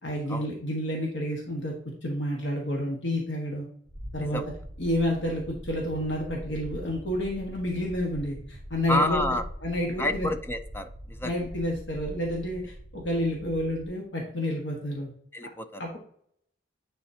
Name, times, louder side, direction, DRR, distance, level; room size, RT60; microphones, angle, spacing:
voice 1, 0.0-1.7 2.0-3.7 4.1-4.4 4.8-9.2 9.6-10.3 11.2-15.1 15.8-16.0, left 1 dB, 90° left, -1 dB, 1.4 m, -30 dB
sound 1, 3.9-13.9, equal, ahead, 2.5 m, -42 dB
voice 2, 8.9-9.4 10.0-11.3 15.3-16.0, left 1 dB, 15° left, 8 dB, 0.5 m, -29 dB
10.0 x 4.1 x 2.8 m, 0.66 s
head